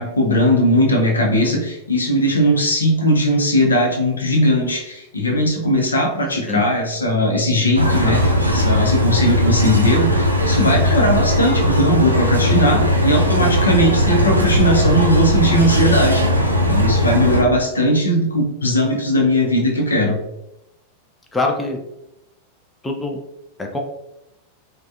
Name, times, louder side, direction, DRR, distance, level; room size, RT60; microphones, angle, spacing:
voice 1, 0.0-16.2 16.7-20.2, equal, 75° left, 1 dB, 0.6 m, -18 dB
sound 1, 7.7-17.4, equal, 85° right, 0.4 m, -18 dB
voice 2, 21.3-21.8 22.8-23.2 23.6-23.8, left 2 dB, 10° left, 1 dB, 0.4 m, -23 dB
3.2 x 2.2 x 2.6 m, 0.86 s
figure-of-eight pair, 90°, 0 cm